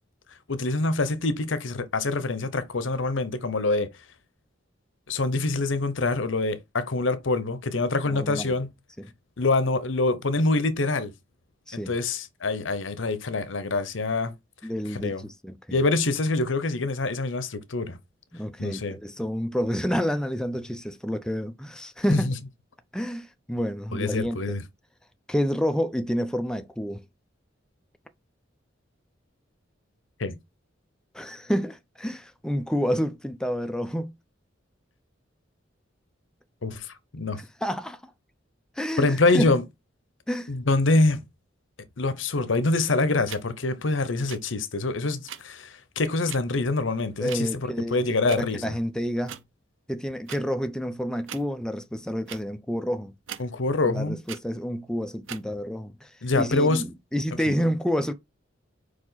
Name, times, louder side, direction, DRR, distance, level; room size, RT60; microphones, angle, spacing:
voice 1, 0.5-3.9 5.1-8.7 9.4-11.1 11.7-14.3 14.9-15.2 15.7-18.0 18.6-19.0 22.1-22.3 23.9-24.6 30.2-30.4 36.6-36.9 37.1-37.4 39.0-39.6 40.5-41.2 42.0-48.7 53.4-54.2 56.2-56.8, left 2 dB, 80° left, 0.9 m, -25 dB
voice 2, 8.0-8.5 9.0-9.1 11.7-11.9 14.6-15.8 18.3-22.3 22.9-24.6 25.3-27.0 31.1-34.1 37.4-38.0 38.8-39.5 40.3-40.5 47.2-48.0 48.4-49.4 49.9-53.1 53.8-58.1, equal, 5° left, 0.5 m, -29 dB
sound 1, 43.3-43.4 44.2-44.4 45.3-45.4 46.3-46.4 47.3-47.4 48.3-48.4 49.3-49.4 50.3-50.4 51.2-51.5 52.3-52.4 53.3-53.4 54.3-54.4 55.2-55.4, right 9 dB, 85° right, 0.7 m, -39 dB
4.9 x 4.8 x 4.0 m
head